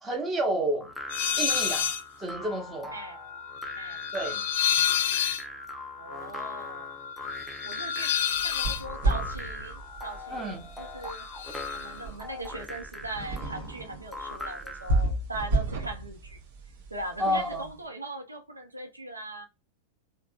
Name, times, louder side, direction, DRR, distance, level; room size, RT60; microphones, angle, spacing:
voice 1, 0.0-0.9 1.4-1.9 2.2-2.9 4.1-4.4 10.3-10.7 17.2-17.6, right 1 dB, 15° right, 1.0 m, -30 dB
sound 1, 0.8-15.0, left 2 dB, ahead, 0.6 m, -41 dB
sound 2, 1.1-2.0 2.4-10.5 10.8-11.8, left 9 dB, 55° left, 0.4 m, -31 dB
voice 2, 6.0-6.9 7.6-11.3 11.7-16.4 16.9-19.5, right 2 dB, 80° right, 0.5 m, -39 dB
sound 3, 8.3-17.7, right 2 dB, 55° right, 0.8 m, -33 dB
3.4 x 2.0 x 2.3 m
figure-of-eight pair, 90°, 0 cm